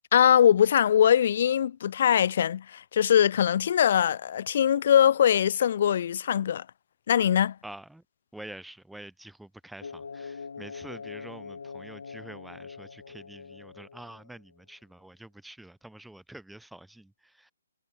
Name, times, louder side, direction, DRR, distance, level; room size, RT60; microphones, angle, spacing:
voice 1, 0.1-6.6 7.1-7.6, left 9 dB, 50° left, 0.8 m, -22 dB
voice 2, 7.6-8.0 8.3-17.5, right 1 dB, ahead, 7.8 m, -47 dB
sound 1, 9.8-14.5, left 5 dB, 75° left, 0.9 m, -43 dB
hypercardioid pair, 155°, 0 cm